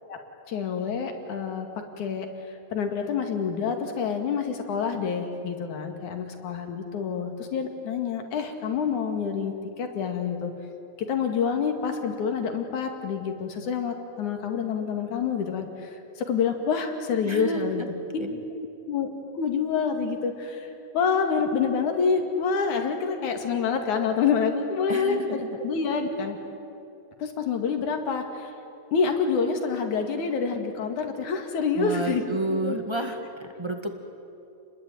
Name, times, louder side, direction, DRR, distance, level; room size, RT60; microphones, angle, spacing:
voice 1, 0.5-1.7 2.0-2.3 2.7-10.5 11.1-15.9 16.3-17.8 18.1-18.3 18.9-19.1 19.4-20.7 20.9-26.4 27.2-28.5 28.9-32.2 32.5-32.8, left 6 dB, 80° left, 5 dB, 3.7 m, -27 dB
voice 2, 17.2-17.9 18.2-18.4 24.9-25.6 31.7-34.0, right 2 dB, 15° right, 5 dB, 1.2 m, -31 dB
29.5 x 21.0 x 9.4 m, 2.7 s
omnidirectional pair, 3.4 m